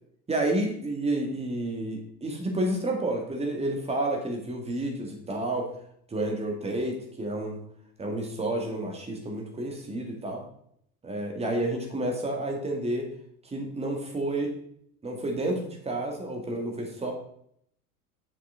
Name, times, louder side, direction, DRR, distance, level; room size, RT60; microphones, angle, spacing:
voice 1, 0.3-5.7 6.1-7.6 8.0-10.4 11.0-13.1 13.5-14.5 15.0-17.1, right 1 dB, 15° right, 2 dB, 1.8 m, -30 dB
7.0 x 6.5 x 3.9 m, 0.68 s
figure-of-eight pair, 80°, 44 cm